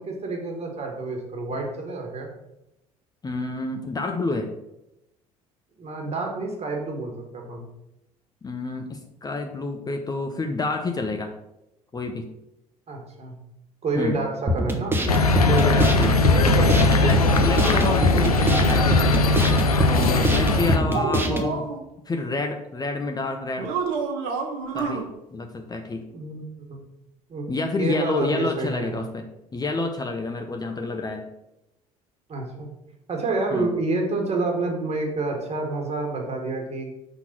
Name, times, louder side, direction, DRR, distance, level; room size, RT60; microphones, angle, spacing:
voice 1, 0.0-2.3 5.8-7.6 12.9-13.4 13.8-15.0 17.2-17.4 20.6-21.0 26.1-26.8 27.3-27.5 27.8-28.9 32.3-32.7 33.1-37.0, right 3 dB, 35° right, 2 dB, 1.8 m, -29 dB
voice 2, 3.2-4.5 8.4-11.3 11.9-12.3 14.0-14.2 15.4-19.4 19.8-21.7 22.1-23.7 24.7-25.0 25.3-26.1 27.5-31.3 33.5-33.7, left 3 dB, 20° left, 4 dB, 0.8 m, -28 dB
sound 1, 14.5-21.5, equal, 10° right, 1.1 m, -24 dB
sound 2, 15.1-20.8, left 2 dB, 85° left, 0.5 m, -19 dB
sound 3, 20.5-21.8 23.6-25.0, right 5 dB, 60° right, 1.2 m, -28 dB
5.8 x 3.9 x 5.9 m, 0.88 s
figure-of-eight pair, 60°, 19 cm